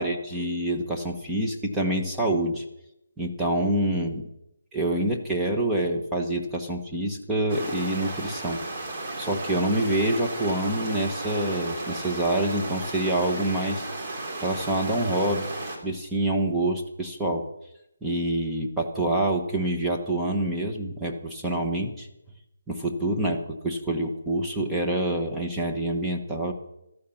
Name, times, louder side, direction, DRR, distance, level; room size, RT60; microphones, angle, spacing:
voice 1, 0.0-2.6 3.2-4.2 4.7-8.6 9.2-13.9 14.4-15.5 15.8-17.4 18.0-22.1 22.7-26.5, right 1 dB, 5° right, -1 dB, 1.3 m, -26 dB
sound 1, 7.5-15.8, right 2 dB, 30° right, 2.8 m, -34 dB
14.0 x 13.5 x 5.9 m, 0.85 s
hypercardioid pair, 170°, 0 cm